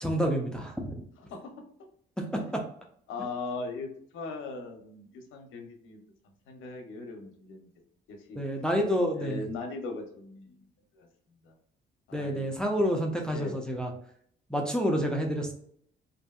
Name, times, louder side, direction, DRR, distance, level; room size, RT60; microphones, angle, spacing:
voice 1, 0.0-1.0 8.4-9.4 12.1-13.9 14.5-15.5, equal, 5° left, 1 dB, 0.5 m, -28 dB
voice 2, 3.1-7.7 8.1-8.4 9.1-10.7 10.9-11.6 12.1-12.6 13.3-13.6, left 3 dB, 85° left, 4 dB, 0.7 m, -39 dB
2.7 x 2.5 x 2.3 m, 0.63 s
cardioid pair, 90°, 20 cm